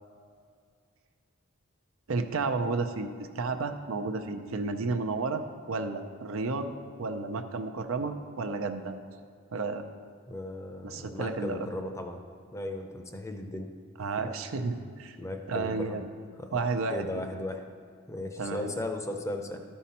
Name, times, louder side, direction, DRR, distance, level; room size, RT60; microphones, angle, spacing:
voice 1, 2.1-6.7 7.0-8.9 9.5-9.8 10.8-11.7 14.0-15.2 15.5-16.1 16.5-17.0 18.4-18.7, right 3 dB, 80° right, 7 dB, 0.6 m, -32 dB
voice 2, 10.3-12.2 12.5-13.7 14.2-14.3 15.2-16.0 16.4-16.5 16.9-17.6 18.1-19.6, left 1 dB, 15° left, 5 dB, 0.6 m, -36 dB
12.5 x 5.6 x 4.2 m, 2.2 s
head